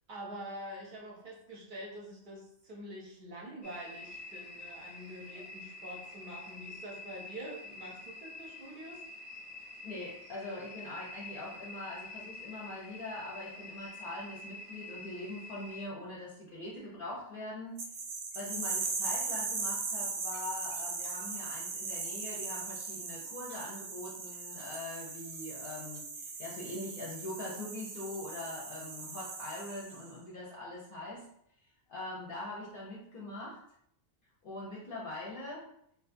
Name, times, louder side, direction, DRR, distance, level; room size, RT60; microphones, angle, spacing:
voice 1, 0.1-9.0, right 1 dB, 55° right, -2 dB, 0.6 m, -46 dB
sound 1, 3.6-15.9, left 3 dB, 20° left, 0.5 m, -47 dB
voice 2, 9.8-17.8 18.3-31.3 31.9-33.6 34.4-35.7, left 2 dB, 60° left, -5 dB, 0.7 m, -42 dB
sound 2, 17.8-30.1, right 4 dB, 90° right, 0.9 m, -39 dB
2.6 x 2.3 x 2.5 m, 0.71 s
omnidirectional pair, 1.2 m